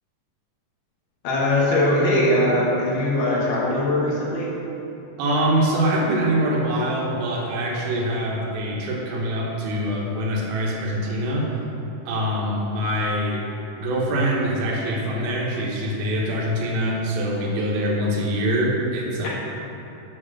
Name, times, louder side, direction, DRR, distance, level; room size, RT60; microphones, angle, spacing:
voice 1, 1.2-4.5 19.2-19.3, left 1 dB, 70° left, -5 dB, 3.1 m, -21 dB
voice 2, 5.2-11.5 12.1-13.4 13.8-19.3, right 1 dB, 85° right, -3 dB, 3.4 m, -24 dB
8.8 x 4.3 x 6.3 m, 2.9 s
omnidirectional pair, 4.9 m